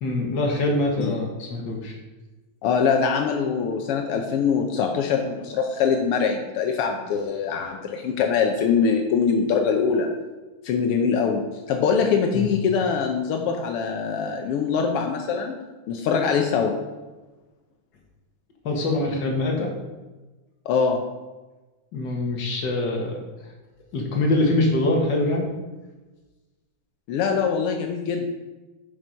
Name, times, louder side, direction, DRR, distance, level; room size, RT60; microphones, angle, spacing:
voice 1, 0.0-2.0 12.3-12.5 18.6-19.7 21.9-23.2 23.9-25.5, left 2 dB, 45° left, 0 dB, 1.7 m, -24 dB
voice 2, 2.6-10.1 10.6-15.6 15.9-16.7 20.6-21.0 27.1-28.3, left 6 dB, 80° left, 3 dB, 1.2 m, -23 dB
7.9 x 6.1 x 5.3 m, 1.2 s
omnidirectional pair, 3.5 m